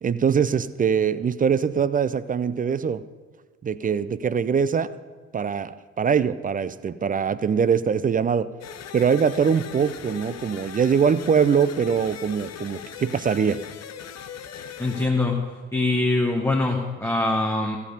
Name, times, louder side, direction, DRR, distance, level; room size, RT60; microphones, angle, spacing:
voice 1, 0.0-3.0 3.6-4.9 5.3-8.5 8.9-13.6, right 7 dB, 25° right, 15 dB, 0.4 m, -22 dB
sound 1, 8.6-15.1, left 8 dB, 45° left, 0.8 m, -39 dB
voice 2, 14.8-15.4 15.7-17.8, left 2 dB, 5° left, 0 dB, 1.2 m, -23 dB
14.5 x 6.9 x 5.2 m, 1.4 s
hypercardioid pair, 50°, 38 cm